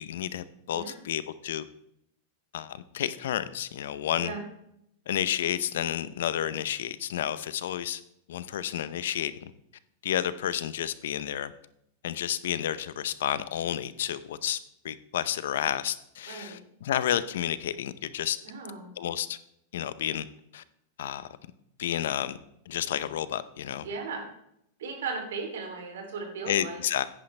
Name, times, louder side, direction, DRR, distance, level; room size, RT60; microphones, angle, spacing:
voice 1, 0.0-1.7 2.5-4.3 5.1-8.0 8.3-9.5 10.0-11.5 12.0-14.6 14.8-18.4 19.0-19.4 19.7-20.3 20.5-20.6 21.0-21.3 21.8-22.4 22.7-23.9 26.5-27.0, left 11 dB, 65° left, 15 dB, 0.6 m, -31 dB
voice 2, 16.3-16.6 18.4-18.9 23.8-24.2 24.8-26.8, right 4 dB, 75° right, 3 dB, 2.9 m, -36 dB
10.5 x 10.0 x 3.3 m, 0.76 s
supercardioid pair, 180°, 0 cm